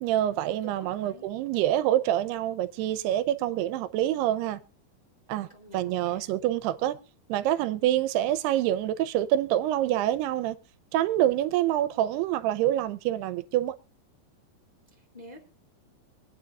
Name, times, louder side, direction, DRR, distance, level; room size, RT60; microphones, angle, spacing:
voice 1, 0.0-4.6 5.3-5.5 5.7-7.0 7.3-10.6 10.9-13.7, right 13 dB, 90° right, 2.8 m, -26 dB
voice 2, 0.6-1.3 5.5-6.3 15.1-15.4, right 1 dB, 15° left, 2.1 m, -47 dB
24.0 x 9.3 x 2.4 m
omnidirectional pair, 4.6 m